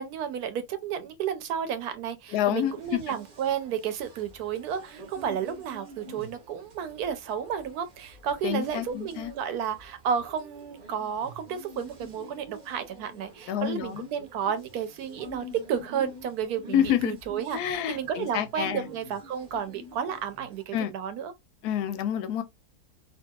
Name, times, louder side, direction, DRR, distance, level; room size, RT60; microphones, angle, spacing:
voice 1, 0.0-21.3, right 8 dB, 80° right, 1.1 m, -32 dB
voice 2, 2.3-3.1 8.4-9.3 13.5-14.1 16.7-17.2 17.5-18.9 20.7-20.9 21.6-22.4, left 10 dB, 85° left, 1.1 m, -28 dB
sound 1, 2.5-20.6, right 1 dB, 45° right, 0.6 m, -48 dB
2.8 x 2.6 x 2.2 m
omnidirectional pair, 1.6 m